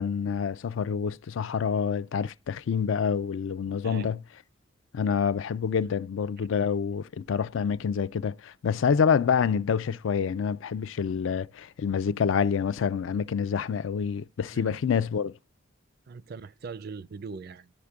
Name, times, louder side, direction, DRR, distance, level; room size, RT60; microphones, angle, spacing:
voice 1, 0.0-4.2 4.9-15.4, left 6 dB, 70° left, 0.4 m, -27 dB
voice 2, 3.7-4.1 14.5-14.8 16.1-17.7, right 4 dB, 50° right, 0.4 m, -41 dB
14.5 x 5.1 x 2.3 m
head